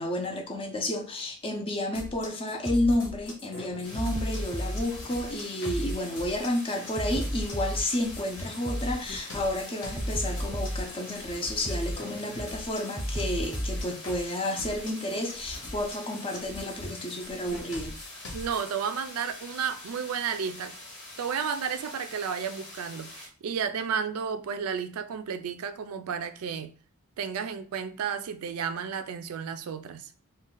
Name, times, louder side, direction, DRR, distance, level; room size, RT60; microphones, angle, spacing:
voice 1, 0.0-18.0, left 1 dB, 25° left, 0.5 m, -31 dB
sound 1, 1.9-18.7, left 1 dB, 60° left, 0.8 m, -43 dB
sound 2, 2.7-3.0 4.0-4.8 5.7-6.0 7.0-7.9 8.7-9.0 10.0-10.9 11.7-12.0 13.0-13.9, equal, 15° right, 0.7 m, -32 dB
sound 3, 3.8-23.3, left 2 dB, 85° left, 1.2 m, -45 dB
voice 2, 18.3-20.7 21.2-26.7 27.2-30.1, right 7 dB, 85° right, 0.4 m, -32 dB
2.5 x 2.2 x 3.7 m
head